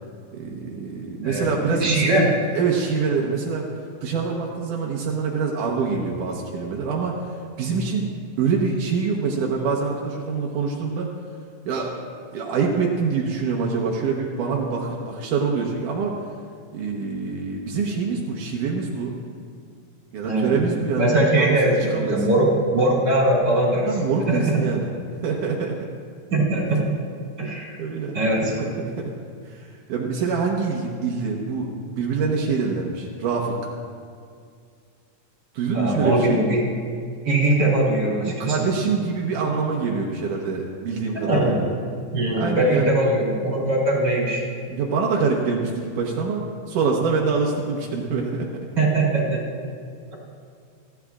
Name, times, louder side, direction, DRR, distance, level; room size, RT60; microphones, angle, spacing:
voice 1, 0.3-2.3 2.6-3.7 4.0-7.3 7.6-8.1 8.4-11.1 11.7-12.0 12.3-16.1 16.7-19.1 20.1-22.2 23.9-24.9 25.2-25.9 27.8-29.1 29.5-33.6 35.5-36.4 38.3-41.7 42.3-42.9 44.7-48.7, right 5 dB, 85° right, -2 dB, 2.7 m, -25 dB
voice 2, 1.2-2.3 20.2-20.5 21.0-24.0 24.3-24.6 26.3-26.8 27.4-27.8 28.1-28.5 35.7-36.6 37.2-38.6 41.1-41.6 42.1-44.4 48.8-49.4, right 1 dB, 30° right, -5 dB, 4.7 m, -21 dB
29.0 x 11.5 x 2.5 m, 2.2 s
omnidirectional pair, 3.7 m